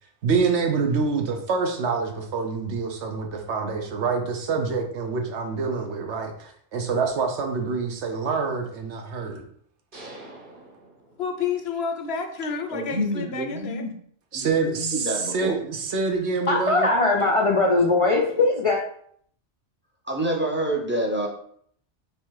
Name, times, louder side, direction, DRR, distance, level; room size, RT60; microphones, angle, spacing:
voice 1, 0.2-9.5 14.3-16.9, right 4 dB, 75° right, 3 dB, 1.0 m, -26 dB
sound 1, 9.9-11.7, right 1 dB, 50° right, 1.2 m, -45 dB
voice 2, 11.2-13.8, left 5 dB, 65° left, 6 dB, 0.8 m, -30 dB
voice 3, 12.7-13.9 14.3-15.5 20.1-21.3, right 1 dB, 10° right, -1 dB, 0.6 m, -27 dB
voice 4, 16.5-18.8, left 3 dB, 45° left, -1 dB, 0.4 m, -20 dB
3.4 x 3.1 x 4.6 m, 0.64 s
omnidirectional pair, 1.2 m